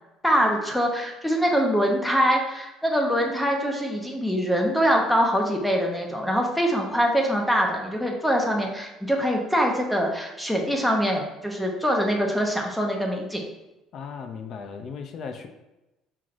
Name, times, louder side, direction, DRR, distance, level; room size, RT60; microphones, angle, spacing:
voice 1, 0.2-13.4, equal, 5° left, 1 dB, 0.7 m, -24 dB
voice 2, 13.9-15.5, left 5 dB, 50° left, 6 dB, 0.5 m, -36 dB
5.6 x 3.1 x 2.5 m, 0.99 s
cardioid pair, 120°, 0 cm